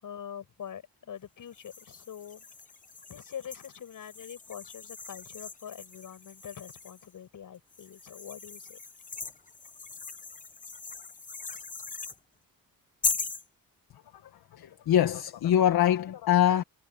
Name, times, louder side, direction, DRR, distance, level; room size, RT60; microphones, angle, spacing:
voice 1, 0.0-2.5 3.1-8.8, left 9 dB, 60° left, 7.1 m, -44 dB
sound 1, 1.5-7.1 7.7-12.2 13.0-13.5, left 4 dB, 20° left, 1.0 m, -39 dB
voice 2, 14.2-16.6, left 10 dB, 85° left, 1.5 m, -24 dB
wide cardioid pair, 160°, 36 cm